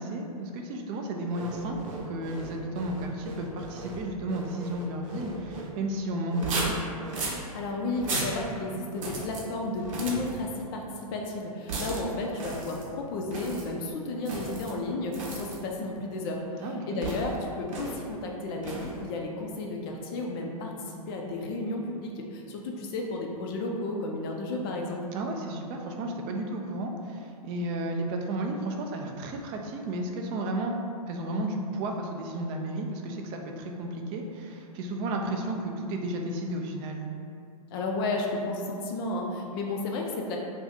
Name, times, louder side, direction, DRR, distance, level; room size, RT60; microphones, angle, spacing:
voice 1, 0.0-6.8 16.6-17.0 25.1-30.7 31.1-37.1, right 1 dB, 30° right, 2 dB, 0.3 m, -33 dB
sound 1, 1.3-5.7 6.3-7.4 7.9-8.4 8.9-9.4 9.8-10.4 11.7-12.0 12.4-12.9 13.3-13.7 14.2-14.7 15.1-15.6 17.0-17.3 17.7-18.0 18.6-19.0, right 3 dB, 55° right, 0.7 m, -35 dB
voice 2, 7.5-20.7 21.1-25.0 37.7-40.4, left 2 dB, 40° left, 0 dB, 0.4 m, -33 dB
2.6 x 2.4 x 4.0 m, 2.5 s
figure-of-eight pair, 110°, 19 cm